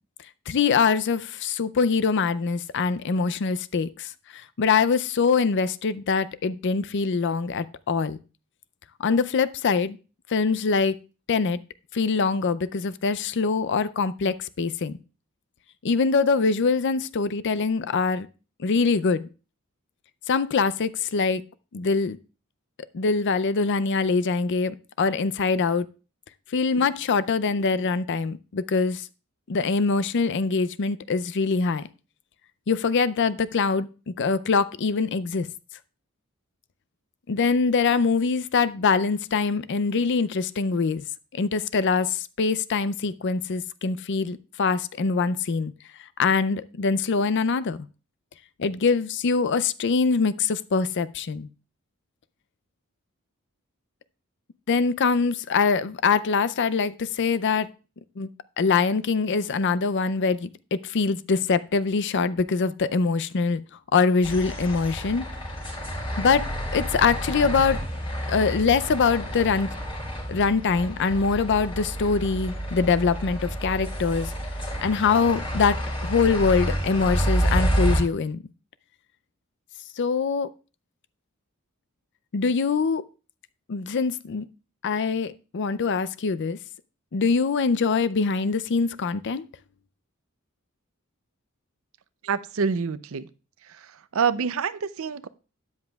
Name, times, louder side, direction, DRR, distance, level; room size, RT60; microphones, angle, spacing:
voice 1, 0.5-8.2 9.0-10.0 10.3-11.0 11.3-11.6 11.9-15.0 15.8-18.3 18.6-19.3 20.3-21.4 21.7-22.2 22.9-25.9 26.5-29.1 29.5-31.8 32.7-35.5 37.3-41.0 41.3-45.7 46.2-47.8 48.6-51.5 54.7-57.7 58.2-58.3 58.6-63.6 63.9-65.3 66.2-66.5 66.7-67.8 68.3-69.7 70.3-74.3 74.8-75.8 76.0-78.4 80.0-80.5 82.3-83.0 83.7-84.5 84.8-86.6 87.1-89.5, left 4 dB, 55° left, 0.5 m, -23 dB
sound 1, 64.2-78.0, equal, 25° left, 4.9 m, -29 dB
voice 2, 92.2-93.3 93.6-95.3, right 6 dB, 65° right, 0.5 m, -27 dB
13.0 x 9.6 x 2.3 m
head